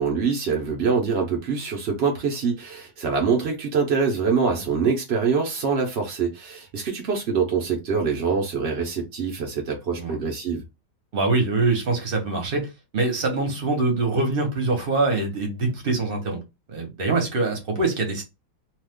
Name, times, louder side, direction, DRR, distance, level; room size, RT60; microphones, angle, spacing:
voice 1, 0.0-10.6, right 5 dB, 75° right, 0.6 m, -24 dB
voice 2, 11.1-16.4 16.7-18.2, right 3 dB, 40° right, 0.9 m, -24 dB
2.8 x 2.3 x 3.5 m
omnidirectional pair, 2.0 m